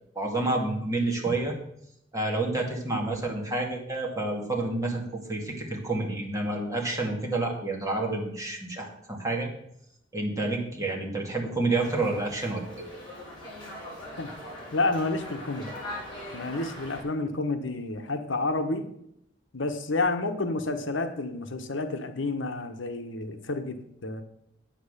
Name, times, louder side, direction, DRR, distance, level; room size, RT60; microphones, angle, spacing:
voice 1, 0.2-1.5 2.1-9.5 10.1-12.9, right 2 dB, 15° right, 0 dB, 2.3 m, -29 dB
Dog, 11.7-17.0, left 1 dB, 25° left, 4.9 m, -41 dB
voice 2, 14.7-15.7 16.3-18.9 19.5-24.2, left 2 dB, 70° left, 7 dB, 1.1 m, -30 dB
8.9 x 7.9 x 6.7 m, 0.74 s
head